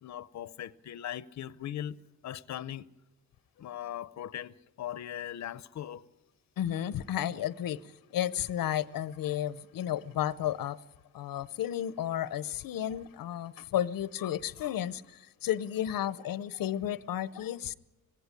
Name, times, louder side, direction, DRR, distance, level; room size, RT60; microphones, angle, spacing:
voice 1, 0.0-2.0 2.2-2.9 3.6-6.0, left 11 dB, 55° left, 0.6 m, -39 dB
voice 2, 6.6-7.8 8.1-10.8 11.1-15.0 15.4-17.7, left 11 dB, 90° left, 0.7 m, -32 dB
19.0 x 16.5 x 9.8 m
wide cardioid pair, 125°, 33 cm